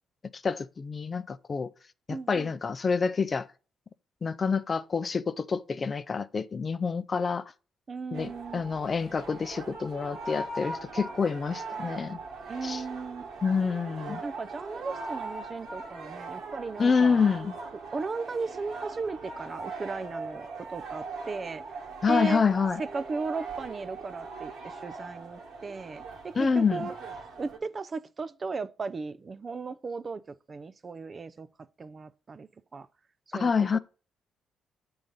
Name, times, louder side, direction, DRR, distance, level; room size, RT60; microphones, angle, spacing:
voice 1, 0.4-1.7 2.1-3.5 4.2-7.4 8.1-12.2 12.6-12.8 13.4-14.2 16.8-17.5 22.0-22.8 26.4-26.9 33.3-33.8, left 5 dB, 35° left, 0.4 m, -27 dB
voice 2, 2.1-2.5 7.9-8.6 12.5-13.3 14.2-17.3 17.9-21.6 22.1-22.4 22.8-27.0 27.4-31.5 31.8-32.9 33.3-33.8, right 4 dB, 35° right, 0.4 m, -36 dB
sound 1, 8.1-27.6, right 3 dB, 75° right, 1.6 m, -40 dB
7.2 x 3.9 x 5.2 m
cardioid pair, 90°, 0 cm